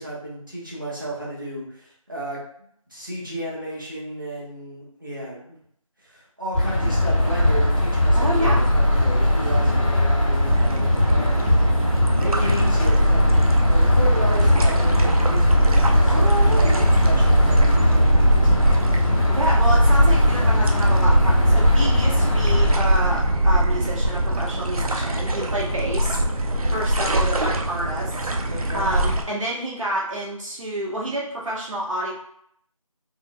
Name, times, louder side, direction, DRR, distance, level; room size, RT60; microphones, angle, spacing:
voice 1, 0.0-2.4 2.9-5.6 6.0-11.6 12.1-18.9 28.5-28.9, right 1 dB, 35° right, -5 dB, 0.8 m, -33 dB
sound 1, 6.5-22.7, left 1 dB, 70° left, 1.1 m, -19 dB
voice 2, 8.1-8.6 16.1-16.9 19.3-26.2 26.7-28.1 28.7-32.1, right 1 dB, 65° right, -6 dB, 1.1 m, -28 dB
sound 2, 10.5-29.2, right 1 dB, 90° right, 0.5 m, -22 dB
3.7 x 2.1 x 2.2 m, 0.67 s
figure-of-eight pair, 175°, 18 cm